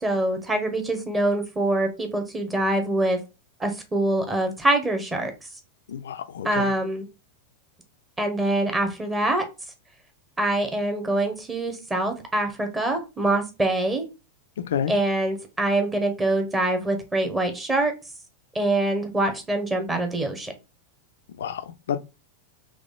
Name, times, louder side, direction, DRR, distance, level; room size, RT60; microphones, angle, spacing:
voice 1, 0.0-3.2 3.6-5.3 6.4-7.1 8.2-9.4 10.4-14.0 14.9-17.9 18.5-20.5, right 1 dB, 10° right, 1.2 m, -24 dB
voice 2, 5.9-6.7 14.6-14.9 21.4-21.6 21.9-22.0, left 8 dB, 60° left, 0.4 m, -29 dB
3.9 x 3.1 x 3.6 m
figure-of-eight pair, 90°, 0 cm